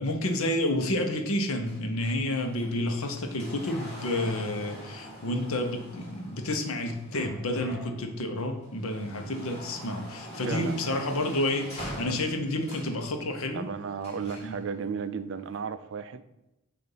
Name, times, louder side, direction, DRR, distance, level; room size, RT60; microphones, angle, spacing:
voice 1, 0.0-13.7 14.4-14.6, left 1 dB, 75° left, 5 dB, 0.8 m, -30 dB
sound 1, 0.8-8.0 8.5-13.0 14.0-14.6 15.5-15.6, equal, 30° left, 1.7 m, -44 dB
sound 2, 3.6-4.6 7.1-8.2, left 1 dB, ahead, 0.8 m, -49 dB
voice 2, 10.5-10.8 13.5-16.2, right 6 dB, 55° right, 12 dB, 0.3 m, -34 dB
6.7 x 2.6 x 5.5 m, 0.94 s
head